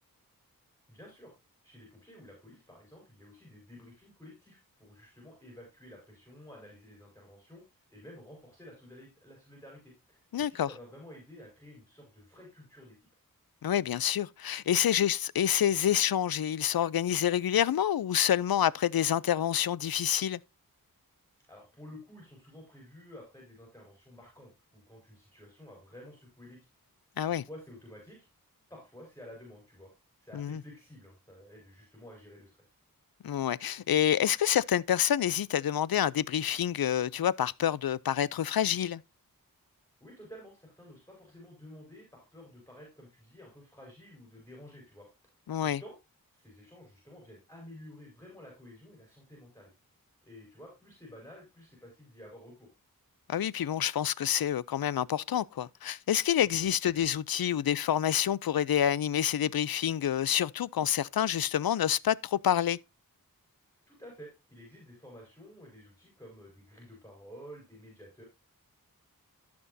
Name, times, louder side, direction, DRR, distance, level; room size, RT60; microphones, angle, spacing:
voice 1, 0.9-1.3 1.6-13.0 21.5-26.7 27.3-28.2 28.7-29.9 30.2-32.5 40.0-45.3 45.6-45.9 46.3-49.7 50.2-52.7 63.9-68.2, left 1 dB, 5° left, 5.2 m, -51 dB
voice 2, 10.3-10.7 13.6-20.4 27.2-27.4 30.3-30.6 33.2-39.0 45.5-45.8 53.3-62.8, left 10 dB, 80° left, 0.5 m, -28 dB
15.0 x 6.2 x 2.7 m
wide cardioid pair, 80°, 35 cm